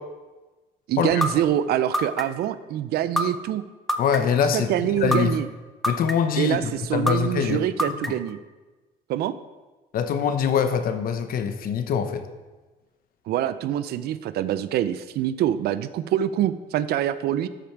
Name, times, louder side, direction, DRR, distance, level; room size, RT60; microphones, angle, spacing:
voice 1, 0.9-3.6 4.5-5.5 6.4-8.4 9.1-9.4 13.3-17.5, right 11 dB, 70° right, 14 dB, 0.5 m, -25 dB
sound 1, 1.2-1.3 1.9-2.5 3.2-3.3 3.9-4.4 5.1-5.2 5.8-6.4 7.1-7.2 7.8-8.3, equal, ahead, 0.6 m, -23 dB
voice 2, 4.0-5.3 5.9-7.6 8.1-8.2 9.9-12.2, left 7 dB, 60° left, 9 dB, 0.9 m, -24 dB
12.5 x 5.0 x 4.6 m, 1.2 s
cardioid pair, 110°, 17 cm